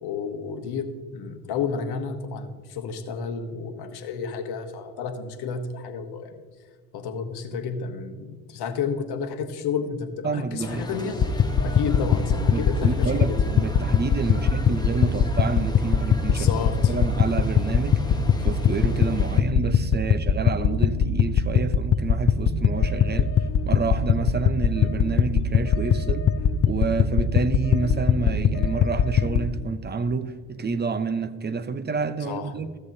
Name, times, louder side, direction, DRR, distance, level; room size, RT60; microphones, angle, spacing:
voice 1, 0.0-6.4 6.9-11.2 11.6-13.2 14.3-14.4 16.3-16.9 32.2-32.5, left 6 dB, 60° left, 1.2 m, -31 dB
voice 2, 10.2-10.9 12.5-16.5 16.9-23.3 23.7-26.3 26.7-32.7, right 4 dB, 25° right, 0.8 m, -28 dB
sound 1, 10.6-19.4, left 2 dB, 10° left, 1.2 m, -34 dB
sound 2, 11.2-29.5, left 6 dB, 30° left, 0.6 m, -22 dB
14.0 x 7.8 x 2.7 m
hypercardioid pair, 45°, 44 cm